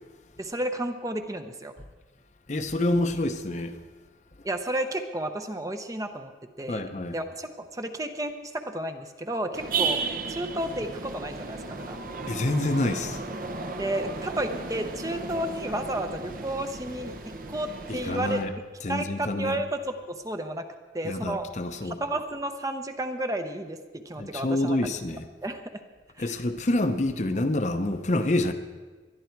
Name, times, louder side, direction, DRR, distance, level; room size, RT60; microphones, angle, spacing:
voice 1, 0.4-1.7 4.4-6.3 6.6-6.9 7.1-10.0 10.3-12.0 13.8-18.4 18.9-20.7 20.9-21.5 21.8-24.8 25.4-25.8 26.2-26.3, right 1 dB, 20° right, 0.8 m, -32 dB
voice 2, 2.5-3.8 6.7-7.2 12.3-13.2 17.9-18.5 18.8-19.6 21.0-22.0 24.2-25.3 26.2-28.5, left 1 dB, 40° left, 0.8 m, -27 dB
sound 1, 9.5-18.5, right 4 dB, 50° right, 0.9 m, -34 dB
20.0 x 11.5 x 4.6 m
head